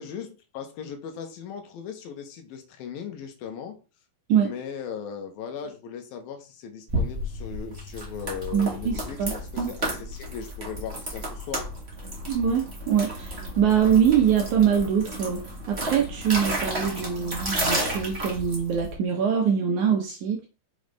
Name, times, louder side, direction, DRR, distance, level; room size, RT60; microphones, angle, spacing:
voice 1, 0.0-3.8 4.4-11.7, left 7 dB, 70° left, 2.6 m, -38 dB
sound 1, 6.9-18.9, right 1 dB, 40° right, 0.8 m, -32 dB
voice 2, 8.5-9.7 12.3-20.5, right 8 dB, 85° right, 1.7 m, -24 dB
6.4 x 5.5 x 3.5 m
omnidirectional pair, 4.9 m